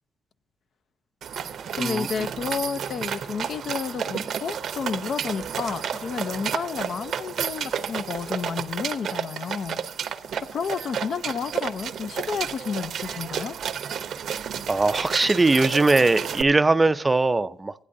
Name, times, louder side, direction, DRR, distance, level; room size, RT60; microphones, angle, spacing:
sound 1, 1.2-16.4, right 8 dB, 65° right, 0.7 m, -31 dB
voice 1, 1.7-9.8 10.5-13.6, left 6 dB, 55° left, 0.5 m, -31 dB
voice 2, 14.7-17.7, right 3 dB, 20° right, 0.4 m, -20 dB
15.5 x 9.8 x 2.6 m
cardioid pair, 90°, 0 cm